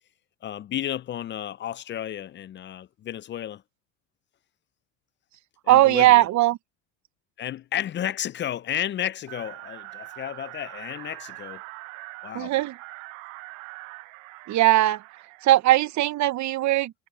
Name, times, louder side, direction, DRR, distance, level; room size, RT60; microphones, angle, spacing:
voice 1, 0.4-3.6 5.7-6.2 7.4-11.6 12.2-12.5, left 11 dB, 30° left, 0.4 m, -32 dB
voice 2, 5.7-6.6 12.3-12.8 14.5-15.0 15.4-16.9, right 15 dB, 45° right, 0.8 m, -19 dB
sound 1, 9.3-15.5, right 24 dB, 85° right, 0.8 m, -43 dB
supercardioid pair, 95°, 39 cm